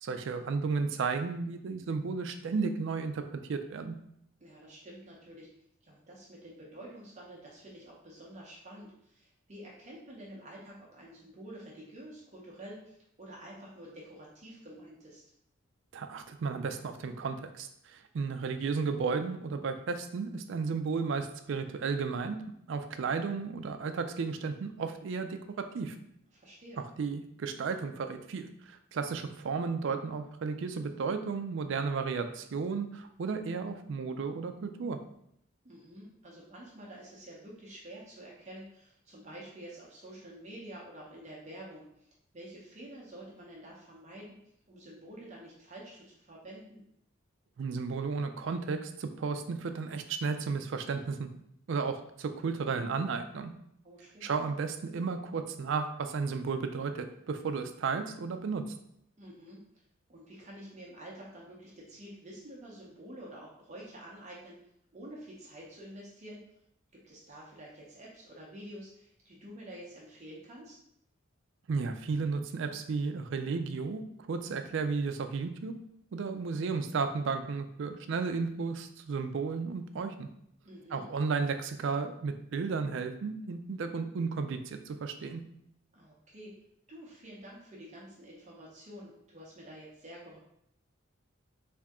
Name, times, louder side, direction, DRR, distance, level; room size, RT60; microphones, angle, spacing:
voice 1, 0.0-3.9 15.9-22.4 22.7-25.4 25.7-26.0 27.0-35.0 47.6-51.3 51.7-53.5 54.2-58.6 71.7-74.0 74.3-75.7 76.1-80.3 80.9-85.4, right 4 dB, 60° right, 8 dB, 0.4 m, -33 dB
voice 2, 4.4-5.5 5.8-15.2 26.3-26.8 35.6-42.1 42.3-46.8 53.8-54.3 59.2-59.7 60.1-64.6 64.9-66.5 66.9-70.8 80.6-81.1 85.9-86.6 86.9-90.4, right 1 dB, 35° right, -4 dB, 0.7 m, -48 dB
3.5 x 2.7 x 3.5 m, 0.73 s
head